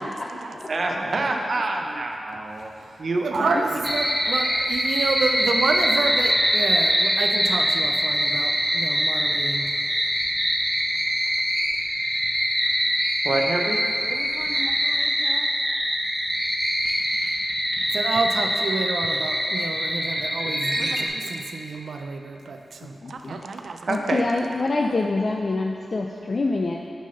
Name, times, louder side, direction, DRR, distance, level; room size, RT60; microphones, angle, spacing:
voice 1, 0.0-0.6 0.9-1.8 3.2-9.7 14.0-15.5 17.9-23.9, right 4 dB, 80° right, 5 dB, 0.4 m, -30 dB
voice 2, 0.7-2.7 3.0-3.6 13.2-13.8 23.9-24.3, right 2 dB, 55° right, 2 dB, 0.7 m, -26 dB
sound 1, 3.8-21.1, equal, ahead, 0.9 m, -24 dB
voice 3, 23.0-23.5 23.9-26.8, left 3 dB, 45° left, 1 dB, 0.4 m, -26 dB
6.2 x 5.5 x 5.6 m, 2.5 s
wide cardioid pair, 110°, 0 cm